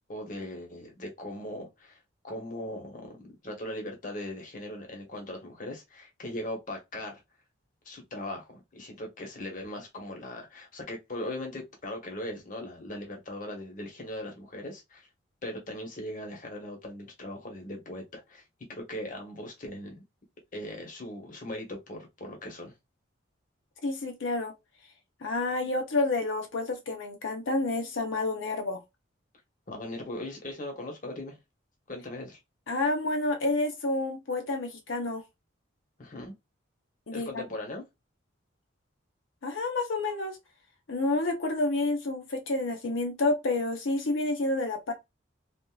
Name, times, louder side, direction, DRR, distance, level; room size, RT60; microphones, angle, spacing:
voice 1, 0.1-2.0 2.2-7.2 7.8-15.1 15.4-18.4 18.7-20.0 20.5-22.7 29.7-31.4 31.9-32.4 36.0-36.3 37.1-37.8, left 1 dB, 40° left, 0.9 m, -39 dB
voice 2, 23.8-24.5 25.2-28.8 32.7-35.2 37.1-37.4 39.4-40.4 40.9-44.9, left 2 dB, 75° left, 0.7 m, -29 dB
3.5 x 2.5 x 2.3 m
head